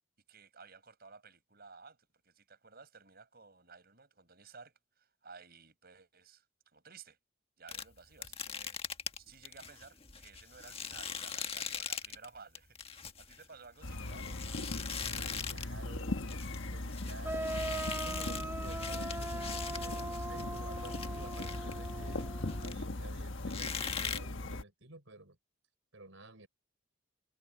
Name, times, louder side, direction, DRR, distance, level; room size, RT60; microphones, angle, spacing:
voice 1, 0.3-2.0 2.2-6.5 6.7-7.2 7.6-8.8 9.2-14.7, right 5 dB, 45° right, 7.1 m, -55 dB
sound 1, 7.7-12.3 12.6-15.8 16.1-23.1 23.5-24.2, left 6 dB, 25° left, 1.6 m, -41 dB
sound 2, 13.8-24.6, left 2 dB, 60° left, 1.4 m, -39 dB
voice 2, 15.0-16.2 16.5-22.3 22.5-25.4 25.9-26.5, right 2 dB, 65° right, 5.9 m, -52 dB
sound 3, 17.2-22.8, right 1 dB, 10° right, 1.0 m, -40 dB
head